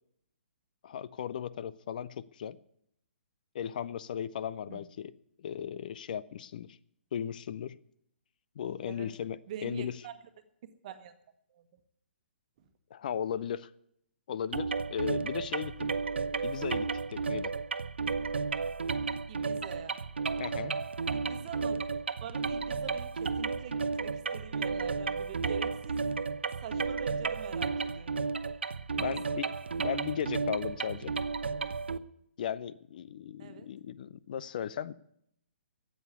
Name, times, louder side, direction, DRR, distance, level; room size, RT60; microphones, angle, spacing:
voice 1, 0.8-2.6 3.5-6.8 7.1-7.8 8.6-10.0 12.9-13.7 14.3-15.9 16.4-17.5 20.4-20.7 28.9-29.5 29.8-31.1 32.4-34.9, left 9 dB, 45° left, 18 dB, 0.5 m, -36 dB
voice 2, 9.5-10.1 10.8-11.1 19.3-20.0 21.1-21.9 22.2-26.3 26.6-28.2 29.0-29.4 33.4-33.7, right 9 dB, 40° right, 9 dB, 1.3 m, -45 dB
sound 1, 14.5-32.0, right 4 dB, 70° right, 0.6 m, -33 dB
12.0 x 8.6 x 9.3 m, 0.73 s
figure-of-eight pair, 130°, 6 cm